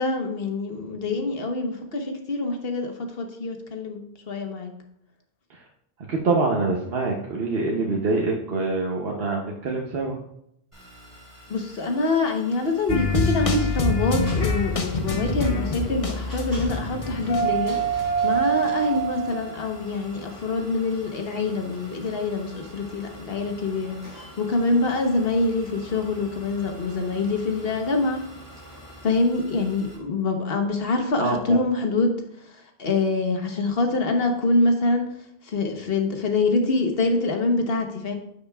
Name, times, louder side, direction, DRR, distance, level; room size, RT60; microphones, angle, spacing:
voice 1, 0.0-4.7 11.5-28.2 29.0-35.0 35.4-38.1, left 3 dB, 70° left, 4 dB, 1.2 m, -25 dB
voice 2, 6.1-10.2 31.2-31.6, right 3 dB, 70° right, 0 dB, 1.1 m, -25 dB
sound 1, 10.7-30.0, equal, 30° right, 3.2 m, -49 dB
sound 2, 12.9-18.7 18.9-19.0, left 3 dB, 35° left, 0.8 m, -27 dB
sound 3, 14.2-28.9, right 8 dB, 20° left, 2.0 m, -30 dB
10.5 x 6.5 x 2.3 m, 0.76 s
omnidirectional pair, 1.0 m